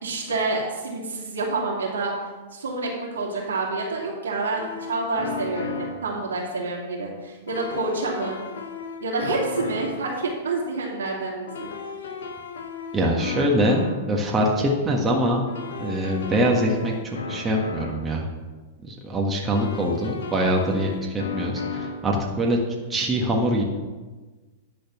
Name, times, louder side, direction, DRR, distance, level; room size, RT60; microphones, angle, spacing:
voice 1, 0.0-2.1 2.5-8.4 9.0-11.7, right 3 dB, 80° right, -3 dB, 2.7 m, -28 dB
sound 1, 4.6-6.1 7.5-10.1 11.5-14.1 15.5-18.1 19.5-22.1, left 5 dB, 75° left, 1.1 m, -35 dB
voice 2, 12.9-15.4 15.8-16.9 17.3-18.3 18.8-22.6 22.9-23.6, right 1 dB, 20° right, -1 dB, 1.5 m, -23 dB
10.5 x 4.2 x 7.0 m, 1.3 s
hypercardioid pair, 110°, 0 cm